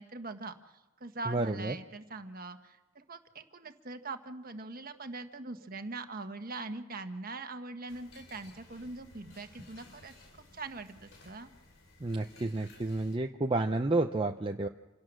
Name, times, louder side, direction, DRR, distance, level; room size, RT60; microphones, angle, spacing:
voice 1, 0.0-10.1 10.5-11.5, right 3 dB, 45° right, 7 dB, 1.5 m, -42 dB
voice 2, 1.3-1.7 12.0-14.7, right 2 dB, 25° right, 4 dB, 0.7 m, -30 dB
sound 1, 7.9-13.2, left 2 dB, 65° left, 4.0 m, -56 dB
27.5 x 17.0 x 6.4 m, 1.2 s
head